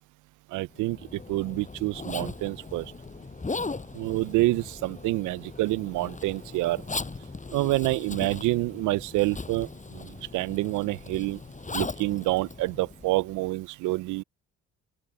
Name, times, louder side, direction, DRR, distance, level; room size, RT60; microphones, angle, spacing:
voice 1, 0.5-2.9 3.9-6.8 7.5-11.4 11.7-14.2, right 19 dB, 90° right, 0.5 m, -28 dB
Zipper (clothing), 0.8-13.4, left 3 dB, 25° left, 6.9 m, -39 dB
open air
cardioid pair, 90°, 30 cm